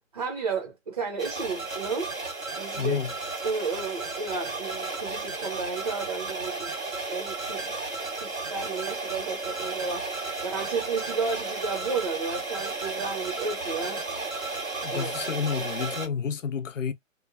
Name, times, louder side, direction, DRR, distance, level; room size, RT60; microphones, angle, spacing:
voice 1, 0.1-2.1 2.6-3.0 3.4-6.7 7.1-7.7 8.2-10.1 10.4-14.0 14.9-15.1, right 4 dB, 30° right, 0.5 m, -32 dB
sound 1, 1.2-16.1, right 3 dB, 80° right, 1.4 m, -33 dB
voice 2, 2.8-3.1 14.8-16.9, left 6 dB, 70° left, 0.6 m, -30 dB
2.9 x 2.1 x 2.4 m
figure-of-eight pair, 140°, 40 cm